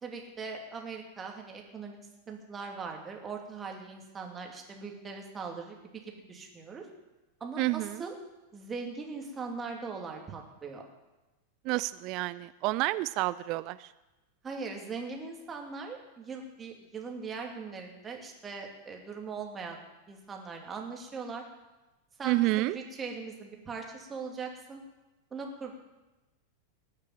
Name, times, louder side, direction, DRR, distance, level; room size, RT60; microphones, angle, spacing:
voice 1, 0.0-2.0 2.3-6.9 7.4-8.1 8.5-10.8 14.4-19.8 20.1-21.4 22.2-24.8 25.3-25.7, right 4 dB, 20° right, 1 dB, 2.6 m, -40 dB
voice 2, 7.6-8.0 11.6-13.9 22.2-22.8, right 20 dB, 40° right, 17 dB, 0.4 m, -29 dB
19.0 x 6.7 x 7.4 m, 1.1 s
figure-of-eight pair, 90°, 0 cm